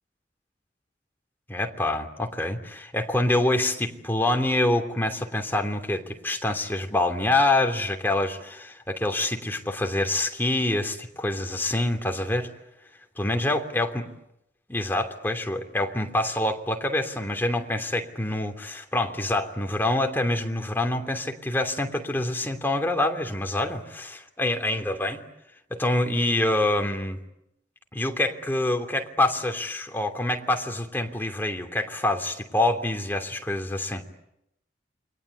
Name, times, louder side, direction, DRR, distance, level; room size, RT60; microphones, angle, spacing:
voice 1, 1.5-12.5 13.2-14.0 14.7-25.2 25.7-27.2 27.9-34.0, left 2 dB, 10° left, 4 dB, 3.0 m, -26 dB
29.5 x 24.0 x 8.4 m, 0.81 s
head